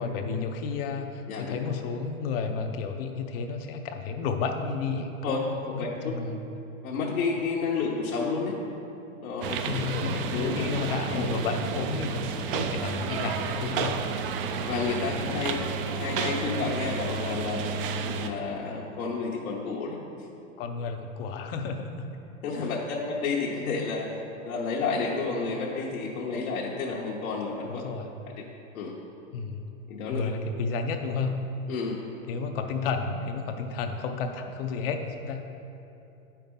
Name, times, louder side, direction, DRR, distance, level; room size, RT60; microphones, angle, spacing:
voice 1, 0.0-6.4 9.6-14.0 20.6-22.1 27.6-28.2 29.3-29.7 30.1-31.4 32.3-35.4, left 5 dB, 45° left, 5 dB, 0.5 m, -32 dB
voice 2, 5.2-6.2 6.8-8.6 9.2-10.0 10.3-10.8 11.1-11.3 14.3-15.6 16.0-17.6 18.0-20.0 22.4-24.1 24.4-27.8 28.4-28.5 28.7-28.9 29.9-30.3 31.7-32.0, left 4 dB, 75° left, -4 dB, 1.0 m, -31 dB
sound 1, 9.4-18.3, right 5 dB, 45° right, 0.4 m, -31 dB
8.4 x 5.7 x 3.7 m, 2.8 s
hypercardioid pair, 130°, 42 cm